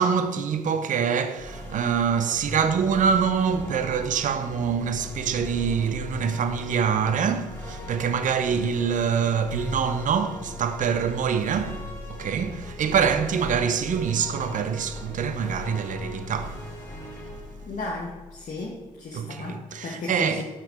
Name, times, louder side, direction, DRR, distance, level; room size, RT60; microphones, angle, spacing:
voice 1, 0.0-16.6 19.1-20.4, right 6 dB, 50° right, 0.5 m, -25 dB
sound 1, 1.3-18.8, left 1 dB, 15° left, 2.2 m, -40 dB
voice 2, 17.7-20.4, left 3 dB, 50° left, 1.1 m, -35 dB
6.0 x 5.6 x 3.5 m
hypercardioid pair, 40°, 17 cm